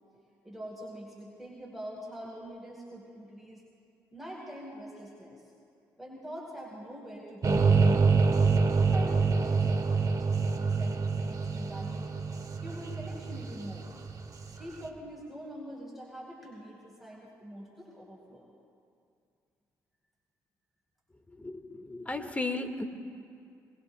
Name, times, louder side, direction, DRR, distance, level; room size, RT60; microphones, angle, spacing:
voice 1, 0.4-3.6 4.1-5.5 6.0-8.4 8.8-10.1 10.5-12.1 12.6-13.9 14.5-18.4, equal, ahead, -5 dB, 4.3 m, -44 dB
sound 1, 7.4-14.5, right 4 dB, 40° right, 1.6 m, -26 dB
voice 2, 21.4-22.8, left 2 dB, 15° left, 6 dB, 1.8 m, -35 dB
23.0 x 23.0 x 2.3 m, 2.4 s
hypercardioid pair, 50°, 9 cm